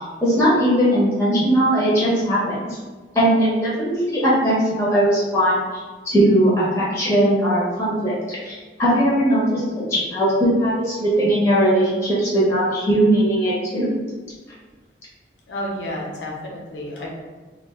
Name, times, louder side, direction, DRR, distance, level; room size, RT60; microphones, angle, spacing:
voice 1, 0.2-2.8 3.1-5.6 6.0-13.9, right 1 dB, 15° left, -8 dB, 0.6 m, -19 dB
voice 2, 15.5-17.1, left 1 dB, 85° left, -2 dB, 0.7 m, -30 dB
2.3 x 2.2 x 3.4 m, 1.3 s
head